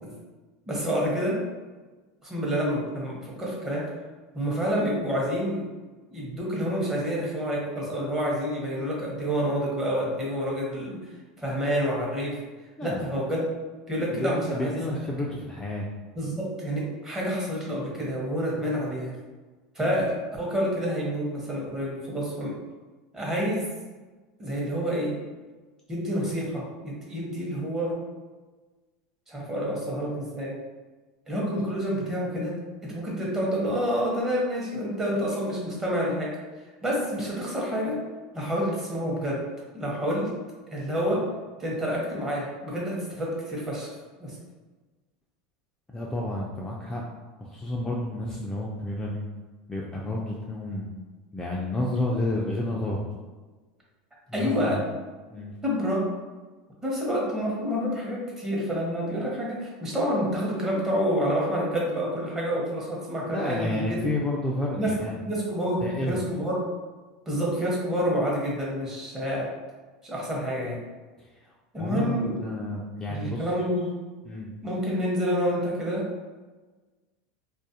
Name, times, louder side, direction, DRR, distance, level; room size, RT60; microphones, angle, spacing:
voice 1, 0.7-1.4 2.2-3.9 4.3-5.6 6.1-11.0 11.4-12.4 12.8-13.5 13.9-14.8 16.2-19.1 19.7-22.5 23.1-23.7 24.4-25.2 25.9-28.0 29.3-30.5 31.3-36.3 36.8-38.0 38.3-39.4 39.7-40.3 40.7-41.2 41.6-43.9 44.2-44.4 54.3-54.8 55.6-56.1 56.8-64.0 64.8-64.9 65.3-66.6 67.3-69.5 70.0-70.8 71.7-72.4 73.1-73.9 74.6-76.0, equal, 15° right, -4 dB, 0.8 m, -28 dB
voice 2, 14.1-15.9 18.6-18.7 19.8-20.1 45.9-47.0 47.4-49.2 49.7-50.9 51.3-53.1 54.3-54.8 55.3-55.5 63.3-65.2 65.8-66.2 71.2-71.3 71.8-73.5 74.2-74.5, left 1 dB, 15° left, -4 dB, 0.3 m, -30 dB
2.4 x 2.0 x 2.7 m, 1.3 s
supercardioid pair, 115°, 3 cm